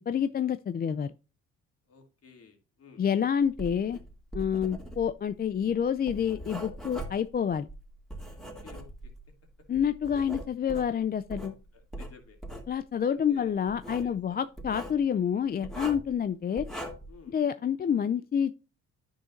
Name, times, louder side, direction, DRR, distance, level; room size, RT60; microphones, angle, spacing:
voice 1, 0.1-1.1 3.0-4.0 4.3-7.7 9.7-11.5 12.7-16.7 17.3-18.5, left 8 dB, 30° left, 0.4 m, -28 dB
voice 2, 1.9-3.0 8.4-9.1 11.7-12.4 13.1-13.5 14.0-14.4 17.1-17.3, left 5 dB, 50° left, 2.7 m, -53 dB
Writing, 3.5-9.3 9.7-11.5 11.9-12.7 13.7-14.1 14.6-15.0 15.6-16.1 16.6-17.2, right 1 dB, ahead, 2.4 m, -41 dB
9.9 x 6.4 x 2.6 m
cardioid pair, 90°, 30 cm